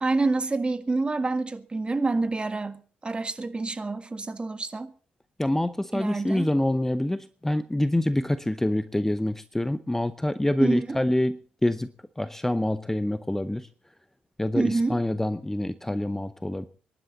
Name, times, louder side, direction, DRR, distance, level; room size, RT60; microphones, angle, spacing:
voice 1, 0.0-4.9 5.9-6.5 10.6-11.0 14.6-15.0, right 3 dB, 25° right, 1.7 m, -27 dB
voice 2, 5.4-11.9 12.2-13.7 14.4-16.7, left 1 dB, 10° left, 0.8 m, -26 dB
25.0 x 11.0 x 4.0 m
figure-of-eight pair, 45°, 4 cm